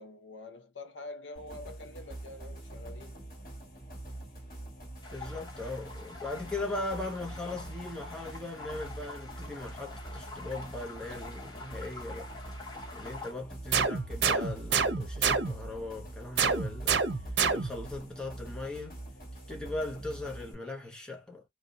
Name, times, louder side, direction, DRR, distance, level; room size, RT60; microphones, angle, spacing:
voice 1, 0.0-3.3, left 2 dB, 85° left, 0.9 m, -46 dB
sound 1, 1.3-20.5, right 1 dB, 50° left, 2.1 m, -45 dB
sound 2, 5.0-13.3, left 3 dB, 20° left, 1.2 m, -46 dB
voice 2, 5.1-12.3 12.9-17.1 17.5-19.0 19.5-21.4, left 2 dB, 5° left, 1.0 m, -39 dB
sound 3, 13.7-15.8 16.4-17.9, right 5 dB, 70° right, 0.7 m, -28 dB
3.1 x 2.7 x 2.8 m
head